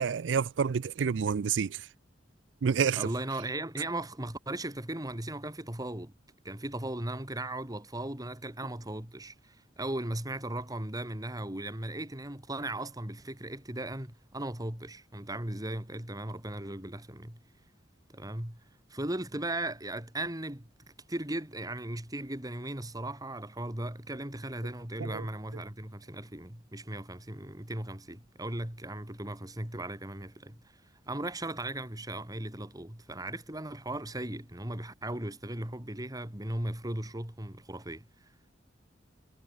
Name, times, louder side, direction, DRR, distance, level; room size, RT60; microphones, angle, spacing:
voice 1, 0.0-1.9 2.6-3.1 25.0-25.3, right 6 dB, 85° right, 0.4 m, -29 dB
voice 2, 3.0-6.1 6.4-17.4 18.1-18.6 18.9-20.7 21.1-30.6 31.1-38.0, right 1 dB, 20° right, 2.7 m, -37 dB
head